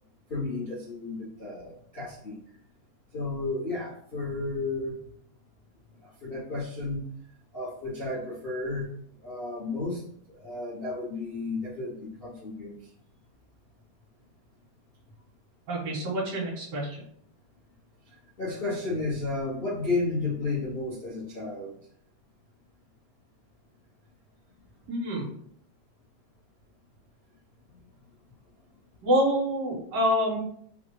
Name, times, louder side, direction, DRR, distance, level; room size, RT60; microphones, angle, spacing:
voice 1, 0.3-2.4 3.1-5.0 6.0-7.1 7.5-8.9 9.2-10.0 10.3-12.8 18.0-21.8 27.7-27.8, left 3 dB, 80° left, -8 dB, 0.5 m, -32 dB
voice 2, 15.7-17.0 24.9-25.3 29.0-30.4, equal, 55° right, -6 dB, 2.7 m, -27 dB
5.4 x 2.4 x 3.1 m, 0.64 s
omnidirectional pair, 3.6 m